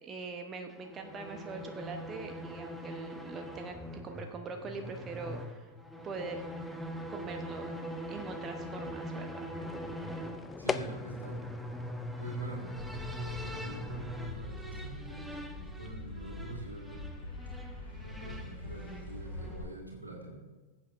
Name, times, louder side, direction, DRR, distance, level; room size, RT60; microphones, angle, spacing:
voice 1, 0.0-5.7 6.0-6.4 7.1-7.7 8.1-9.5, right 3 dB, 25° right, 5 dB, 1.0 m, -42 dB
sound 1, 0.7-19.7, equal, 5° right, 1.0 m, -42 dB
sound 2, 9.6-16.2, left 5 dB, 20° left, 0.4 m, -43 dB
voice 2, 10.6-11.4 12.2-12.7 13.1-17.0 18.0-20.4, right 2 dB, 90° right, -1 dB, 2.3 m, -45 dB
sound 3, 12.8-19.6, left 2 dB, 80° left, 3.4 m, -44 dB
20.0 x 8.2 x 2.6 m, 1.3 s
figure-of-eight pair, 90°, 0 cm